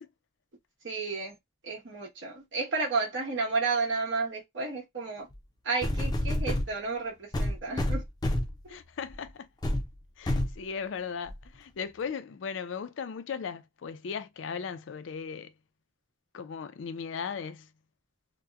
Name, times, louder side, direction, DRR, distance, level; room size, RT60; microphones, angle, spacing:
voice 1, 0.8-1.4 1.6-5.3 5.6-8.0 8.6-8.7, right 4 dB, 75° right, 1.1 m, -32 dB
sound 1, 5.3-5.4 5.8-6.7 7.3-8.6 9.1-9.3 9.6-9.9 10.3-10.6 11.3-11.4, left 1 dB, 20° left, 0.4 m, -28 dB
voice 2, 8.7-9.5 10.2-15.5 16.3-17.7, left 6 dB, 90° left, 0.4 m, -37 dB
2.9 x 2.1 x 2.3 m
head